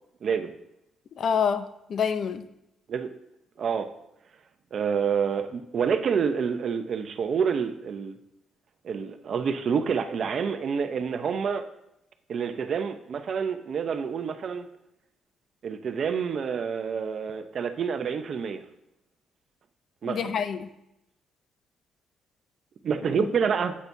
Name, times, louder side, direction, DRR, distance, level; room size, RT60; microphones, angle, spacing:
voice 1, 0.2-0.5 2.9-3.1 3.6-3.9 4.7-8.2 8.8-11.7 12.3-14.7 15.6-18.6 20.0-20.4 22.8-23.7, right 6 dB, 55° right, 8 dB, 0.8 m, -28 dB
voice 2, 1.2-2.5 20.0-20.7 23.2-23.3, left 7 dB, 60° left, 11 dB, 0.6 m, -27 dB
10.5 x 8.5 x 2.8 m, 0.85 s
cardioid pair, 90°, 0 cm